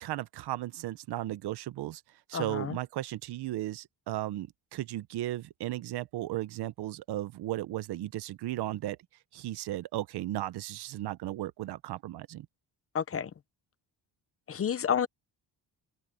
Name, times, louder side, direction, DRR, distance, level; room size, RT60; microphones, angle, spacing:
voice 1, 0.0-2.0 2.3-9.0 9.3-12.5, right 15 dB, 70° right, 0.9 m, -35 dB
voice 2, 2.3-2.8 12.9-13.3 14.5-15.1, left 8 dB, 35° left, 0.8 m, -30 dB
open air
cardioid pair, 140°, 40 cm